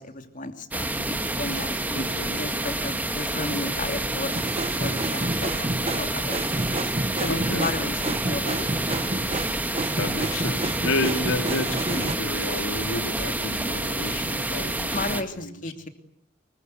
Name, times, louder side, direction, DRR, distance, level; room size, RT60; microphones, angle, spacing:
voice 1, 0.0-2.1 2.4-4.4 4.8-6.4 7.2-9.1 14.9-15.9, left 2 dB, 40° left, 7 dB, 3.0 m, -34 dB
sound 1, 0.7-15.2, right 1 dB, 10° right, 1.8 m, -28 dB
voice 2, 1.9-2.4 7.3-7.7 10.0-15.0 15.4-15.5, left 2 dB, 85° left, 6 dB, 3.7 m, -30 dB
sound 2, 4.3-12.2, right 2 dB, 30° right, 1.2 m, -30 dB
25.0 x 22.0 x 9.6 m, 0.72 s
head